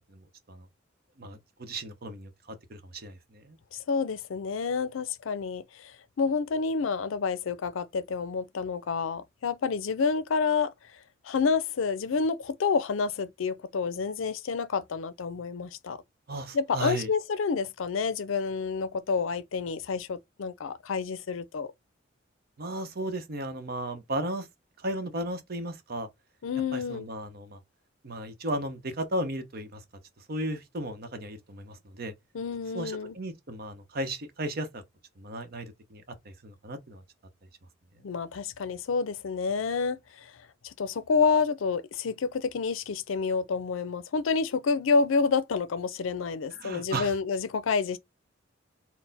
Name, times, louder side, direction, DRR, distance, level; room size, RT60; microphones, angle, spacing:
voice 1, 0.1-0.7 1.2-3.6 16.3-17.1 22.6-24.5 24.8-26.1 26.7-27.6 28.0-29.8 30.3-32.1 32.7-34.8 35.2-37.0 46.6-47.1, right 1 dB, 50° right, 0.8 m, -35 dB
voice 2, 3.7-10.7 11.2-16.0 16.5-21.7 26.4-27.1 32.3-33.1 38.0-40.3 40.6-48.0, left 5 dB, 80° left, 0.5 m, -29 dB
4.1 x 2.1 x 4.0 m
head